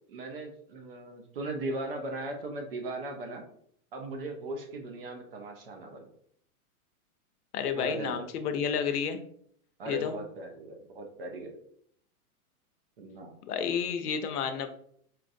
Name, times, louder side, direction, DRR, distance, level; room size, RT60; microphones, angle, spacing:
voice 1, 0.1-3.5 3.9-6.1 7.7-8.2 9.8-11.6 13.0-13.3, right 2 dB, 40° right, 4 dB, 0.5 m, -38 dB
voice 2, 7.5-9.2 9.9-10.1 13.5-14.7, left 7 dB, 85° left, 8 dB, 0.7 m, -30 dB
4.4 x 2.5 x 2.5 m, 0.65 s
supercardioid pair, 170°, 45 cm